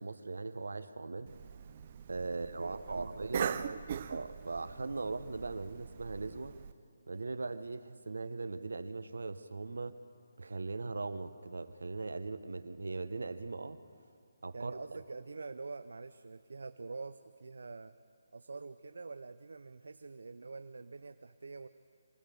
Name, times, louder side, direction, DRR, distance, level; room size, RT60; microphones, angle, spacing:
voice 1, 0.0-1.4 2.1-3.6 4.1-6.6 7.1-9.9 10.4-13.8 14.4-14.8, right 3 dB, 85° right, 12 dB, 1.0 m, -39 dB
Cough, 1.3-6.7, right 8 dB, 25° right, 0.4 m, -42 dB
voice 2, 2.6-3.8 14.5-17.9 18.3-21.7, right 3 dB, 70° right, 10 dB, 0.6 m, -45 dB
24.0 x 17.0 x 6.9 m, 2.3 s
hypercardioid pair, 175°, 0 cm